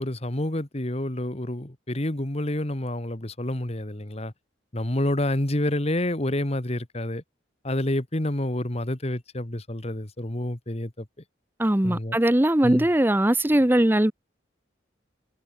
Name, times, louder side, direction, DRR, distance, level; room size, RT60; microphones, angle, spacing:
voice 1, 0.0-4.3 4.7-7.2 7.6-11.1 11.8-12.2 12.6-12.9, left 1 dB, 35° left, 1.8 m, -28 dB
voice 2, 11.6-14.1, right 1 dB, 10° right, 0.8 m, -20 dB
head